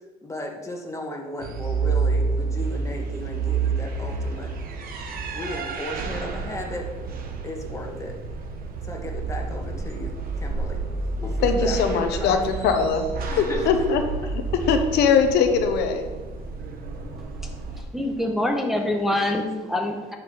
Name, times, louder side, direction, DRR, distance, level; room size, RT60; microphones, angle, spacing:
voice 1, 0.2-4.5 5.3-6.9 7.4-8.2 8.8-10.8 11.2-12.4 13.3-13.7, left 1 dB, 15° left, 0 dB, 1.8 m, -35 dB
sound 1, 1.4-17.8, right 4 dB, 60° right, 1.3 m, -29 dB
voice 2, 11.4-13.0 13.4-14.0 14.7-16.1, left 6 dB, 80° left, 6 dB, 1.0 m, -21 dB
voice 3, 17.9-20.1, left 1 dB, ahead, 1 dB, 1.0 m, -25 dB
11.0 x 5.9 x 4.0 m, 1.3 s
cardioid pair, 110°, 17 cm